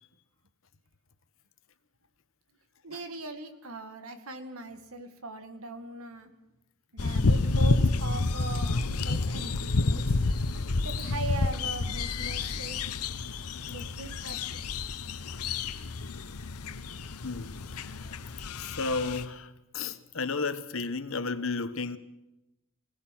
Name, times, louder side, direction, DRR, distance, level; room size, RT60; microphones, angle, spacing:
voice 1, 2.8-6.3 6.9-10.2 10.8-12.8 13.7-14.4 15.5-15.9, right 2 dB, 75° right, 2.1 m, -40 dB
sound 1, 7.0-19.2, left 3 dB, 90° left, 1.0 m, -29 dB
voice 2, 17.2-18.0 18.6-22.0, left 4 dB, 65° left, 1.1 m, -33 dB
25.0 x 18.0 x 6.1 m
head